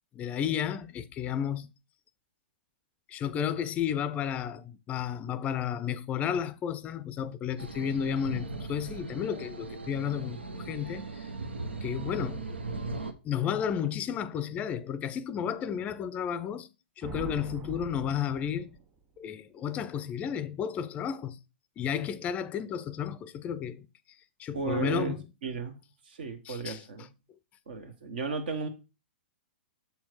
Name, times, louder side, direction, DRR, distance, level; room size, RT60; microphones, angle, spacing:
voice 1, 0.1-1.7 3.1-11.3 11.8-12.4 13.2-16.7 17.0-18.8 19.2-21.4 21.8-23.9 24.4-25.2 26.5-26.8, left 8 dB, 25° left, 0.5 m, -32 dB
sound 1, 7.6-13.1, right 3 dB, 85° right, 0.8 m, -38 dB
sound 2, 17.0-19.0, right 5 dB, 30° right, 1.7 m, -42 dB
voice 2, 24.5-25.1 25.4-25.8 26.0-27.1 27.7-28.7, right 5 dB, 65° right, 1.1 m, -34 dB
6.8 x 4.4 x 4.5 m
figure-of-eight pair, 110°, 6 cm